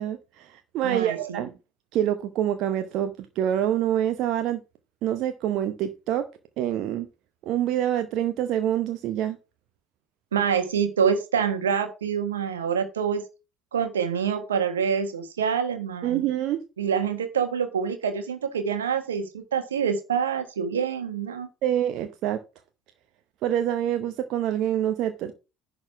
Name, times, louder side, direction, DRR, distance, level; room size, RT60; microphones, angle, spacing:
voice 1, 0.0-1.5 1.9-4.6 5.0-6.3 6.6-7.1 7.5-9.4 16.0-16.6 21.6-22.4 23.4-25.3, right 11 dB, 55° right, 0.8 m, -26 dB
voice 2, 0.8-1.4 10.3-13.2 13.7-16.3 16.8-21.5, right 7 dB, 80° right, 1.4 m, -26 dB
10.5 x 4.0 x 5.9 m
figure-of-eight pair, 60°, 0 cm